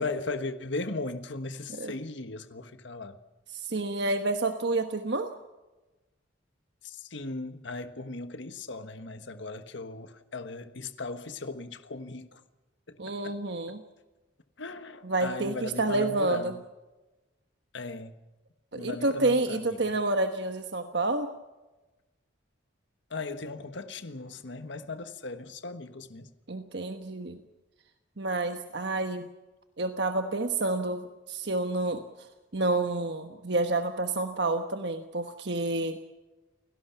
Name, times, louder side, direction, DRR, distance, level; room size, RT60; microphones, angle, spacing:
voice 1, 0.0-3.2 6.8-12.4 12.9-13.3 14.6-16.6 17.7-18.2 18.7-19.9 23.1-26.3, left 3 dB, 70° left, 9 dB, 1.4 m, -37 dB
voice 2, 3.5-5.3 13.0-13.8 15.0-16.5 18.7-21.3 26.5-27.4 28.2-29.3 29.8-32.0 32.5-36.0, right 2 dB, 60° right, 7 dB, 1.2 m, -29 dB
29.5 x 18.0 x 5.8 m, 1.1 s
head